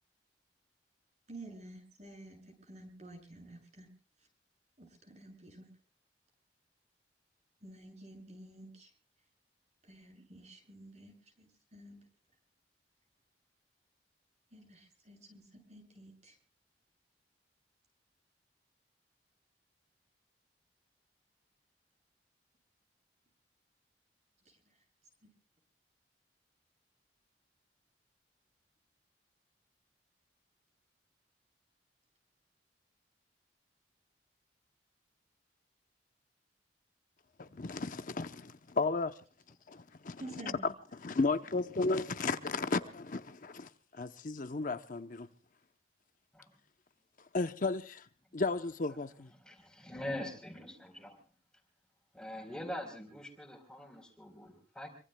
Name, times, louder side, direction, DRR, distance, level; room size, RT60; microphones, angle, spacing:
voice 1, 1.3-3.9 4.8-5.7 7.6-8.9 9.8-12.0 14.5-16.4 40.2-40.7, right 1 dB, 40° right, 7.5 m, -51 dB
voice 2, 37.4-39.1 39.7-45.3 47.3-48.1 48.3-49.3, left 3 dB, 50° left, 0.8 m, -34 dB
voice 3, 49.4-51.2 52.1-54.9, left 1 dB, 5° left, 3.9 m, -43 dB
26.5 x 24.5 x 2.2 m
head